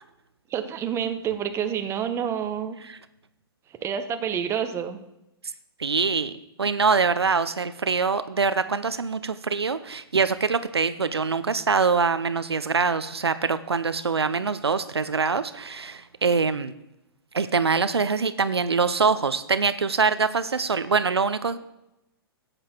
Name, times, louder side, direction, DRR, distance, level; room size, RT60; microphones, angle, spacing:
voice 1, 0.5-2.8 3.8-5.0, right 8 dB, 20° right, 8 dB, 1.0 m, -28 dB
voice 2, 5.8-16.7 17.3-21.6, right 5 dB, 85° right, 12 dB, 0.6 m, -24 dB
12.5 x 7.9 x 4.4 m, 0.88 s
figure-of-eight pair, 120°, 13 cm